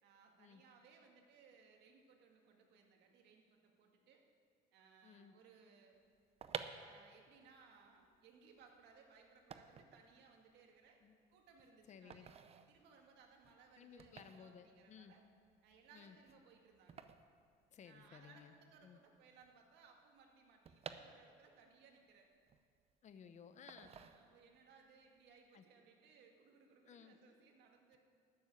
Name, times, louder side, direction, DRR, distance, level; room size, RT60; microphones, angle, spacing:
voice 1, 0.0-4.2 4.7-6.0 6.7-11.0 11.3-12.4 12.7-15.2 15.6-17.1 17.8-22.3 23.8-28.0, right 5 dB, 75° right, 2 dB, 2.0 m, -65 dB
voice 2, 5.0-5.3 11.0-11.1 11.9-12.3 13.8-15.1 15.9-16.2 17.7-18.5 18.8-19.0 23.0-23.9 25.5-25.6 26.9-27.2, left 7 dB, 45° left, 9 dB, 0.9 m, -58 dB
sound 1, 6.1-18.3 18.5-18.6 18.8-21.7 22.1-23.1 23.7-24.7 25.0-25.3, right 7 dB, 35° right, 0.7 m, -53 dB
13.0 x 7.1 x 8.6 m, 2.2 s
cardioid pair, 110°, 17 cm